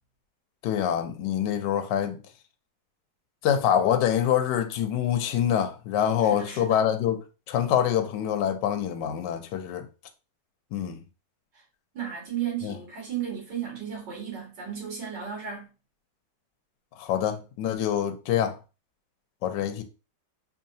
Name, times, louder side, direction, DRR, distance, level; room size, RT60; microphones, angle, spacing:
voice 1, 0.6-2.2 3.4-7.2 7.5-9.9 10.7-11.0 12.6-12.7 17.0-18.6 19.4-19.8, left 9 dB, 75° left, 1.1 m, -25 dB
voice 2, 6.2-6.8 11.9-15.7, right 9 dB, 60° right, 2.3 m, -34 dB
4.6 x 2.8 x 2.7 m
omnidirectional pair, 2.2 m